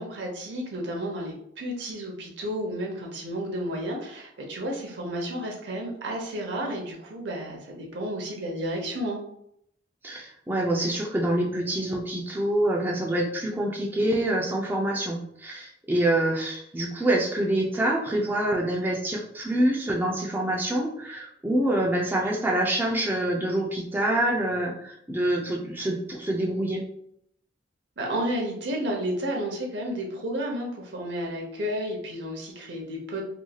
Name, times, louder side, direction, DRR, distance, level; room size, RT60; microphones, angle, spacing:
voice 1, 0.0-9.2 28.0-33.2, equal, 75° right, 0 dB, 0.8 m, -32 dB
voice 2, 10.0-26.8, right 1 dB, 10° right, -2 dB, 0.4 m, -26 dB
3.0 x 2.6 x 2.3 m, 0.71 s
head